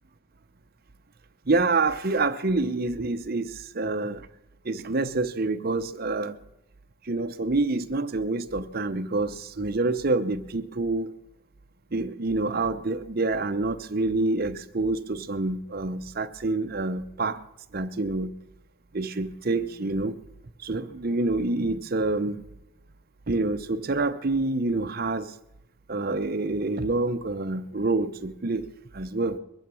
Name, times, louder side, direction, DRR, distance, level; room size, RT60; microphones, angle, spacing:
voice 1, 1.5-4.3 4.6-6.4 7.0-11.1 11.9-17.4 17.7-18.3 18.9-20.2 20.6-22.4 23.3-25.3 25.9-28.7 28.9-29.4, right 3 dB, 50° right, 0.8 m, -27 dB
22.0 x 9.2 x 7.0 m
head